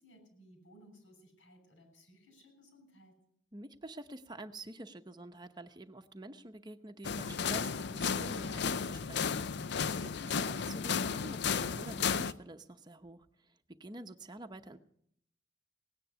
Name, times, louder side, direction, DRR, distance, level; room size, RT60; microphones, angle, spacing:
voice 1, 0.0-3.1, equal, 80° left, 5 dB, 6.4 m, -60 dB
voice 2, 3.5-13.5 13.8-14.8, right 2 dB, 20° right, 7 dB, 0.8 m, -48 dB
sound 1, 7.0-12.3, left 6 dB, 60° left, 0.5 m, -33 dB
17.0 x 9.9 x 6.8 m, 0.69 s
head